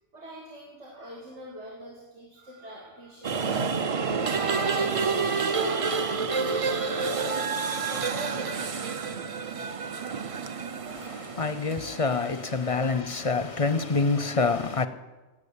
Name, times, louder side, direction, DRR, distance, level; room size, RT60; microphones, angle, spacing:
voice 1, 0.1-10.5 12.7-13.1, equal, 85° right, 2.5 m, -44 dB
sound 1, 3.2-12.7, right 5 dB, 40° right, 0.6 m, -29 dB
voice 2, 10.9-14.9, left 4 dB, 40° left, 0.5 m, -27 dB
16.5 x 7.3 x 8.3 m
omnidirectional pair, 1.2 m